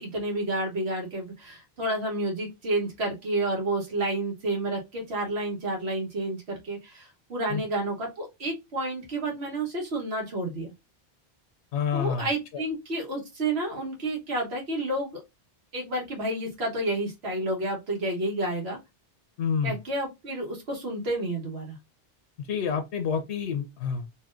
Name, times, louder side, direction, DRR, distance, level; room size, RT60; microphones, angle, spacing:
voice 1, 0.0-10.7 11.9-15.2 15.7-18.8 19.6-21.8, right 1 dB, 70° right, 1.5 m, -30 dB
voice 2, 11.7-12.3 12.5-12.6 19.4-19.8 22.5-24.2, left 6 dB, 85° left, 0.9 m, -28 dB
4.3 x 2.7 x 2.5 m
omnidirectional pair, 1.1 m